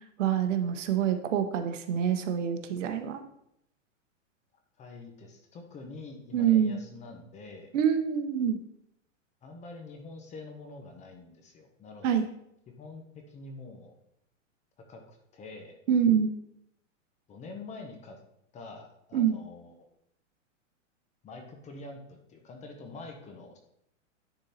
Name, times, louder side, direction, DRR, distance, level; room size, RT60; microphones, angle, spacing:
voice 1, 0.2-3.2 6.3-6.8 7.7-8.6 12.0-12.2 15.9-16.3 19.1-19.4, right 8 dB, 65° right, 8 dB, 1.1 m, -26 dB
voice 2, 4.8-7.7 9.4-12.3 12.8-14.0 14.9-15.8 17.3-18.2 18.5-19.7 21.2-23.6, left 3 dB, 20° left, 4 dB, 0.9 m, -46 dB
10.0 x 4.0 x 4.1 m, 0.76 s
hypercardioid pair, 145°, 39 cm